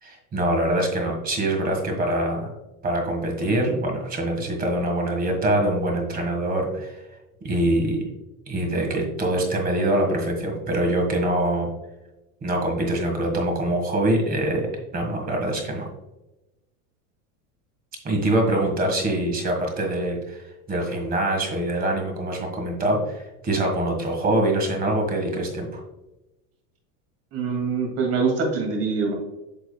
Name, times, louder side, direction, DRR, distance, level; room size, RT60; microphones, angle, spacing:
voice 1, 0.0-2.5 2.8-7.0 7.4-8.0 8.5-11.7 12.4-14.7 14.9-15.9 18.0-20.4 20.7-25.8, right 1 dB, 20° right, 2 dB, 1.7 m, -24 dB
voice 2, 27.3-29.1, right 4 dB, 40° right, 2 dB, 2.4 m, -24 dB
8.5 x 6.0 x 2.3 m, 0.99 s
supercardioid pair, 145°, 39 cm